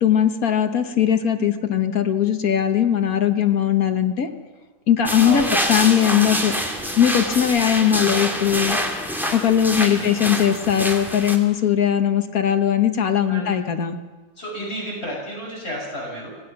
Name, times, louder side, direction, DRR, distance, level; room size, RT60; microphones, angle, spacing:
voice 1, 0.0-4.3 4.9-6.5 7.0-8.8 9.3-14.0, left 9 dB, 60° left, 7 dB, 1.6 m, -19 dB
sound 1, 5.1-11.4, equal, ahead, 2.4 m, -26 dB
voice 2, 5.2-5.5 9.8-10.1 13.3-13.5 14.4-16.3, equal, 40° left, -3 dB, 6.8 m, -31 dB
26.0 x 18.0 x 6.0 m, 1.3 s
omnidirectional pair, 1.8 m